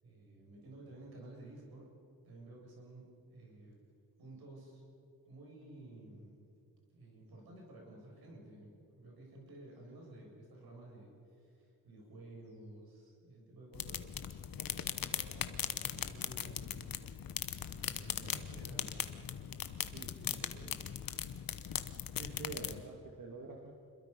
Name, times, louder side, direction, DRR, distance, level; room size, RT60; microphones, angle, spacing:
voice 1, 0.0-1.9 2.3-3.8 4.2-4.8 5.3-6.4 6.9-14.1 14.8-16.8 17.7-19.1 19.6-21.0, right 2 dB, 85° right, -2 dB, 7.5 m, -53 dB
sound 1, 13.8-22.8, left 9 dB, 65° left, 1.1 m, -39 dB
voice 2, 19.8-20.4 22.1-23.7, right 3 dB, 60° right, 0 dB, 2.4 m, -47 dB
27.0 x 22.0 x 5.6 m, 2.6 s
cardioid pair, 85°, 36 cm